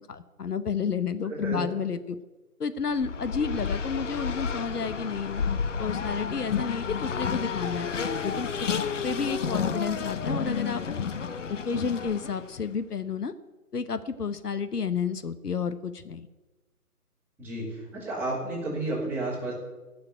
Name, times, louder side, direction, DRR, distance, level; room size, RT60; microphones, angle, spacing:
voice 1, 0.1-2.2 2.6-5.5 5.8-7.9 8.2-8.5 9.0-10.8 11.5-13.3 13.7-16.3, left 6 dB, 75° left, 12 dB, 1.0 m, -31 dB
voice 2, 1.3-1.6 17.4-19.5, right 2 dB, 5° right, -8 dB, 3.3 m, -32 dB
Race car auto racing, 2.9-12.6, left 6 dB, 50° left, 0.9 m, -31 dB
14.0 x 6.9 x 9.2 m, 1.2 s
figure-of-eight pair, 145°, 46 cm